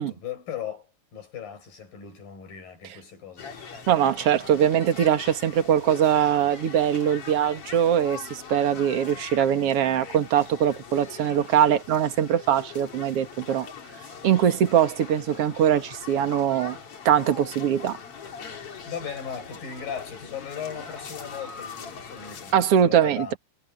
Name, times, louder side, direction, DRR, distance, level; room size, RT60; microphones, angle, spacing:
voice 1, 0.0-3.6 18.9-23.4, left 8 dB, 80° left, 9.3 m, -37 dB
sound 1, 3.4-22.5, left 6 dB, 45° left, 3.2 m, -42 dB
voice 2, 3.9-13.7 14.2-16.8 17.1-18.0 22.5-23.3, right 9 dB, 50° right, 2.4 m, -22 dB
omnidirectional pair, 4.0 m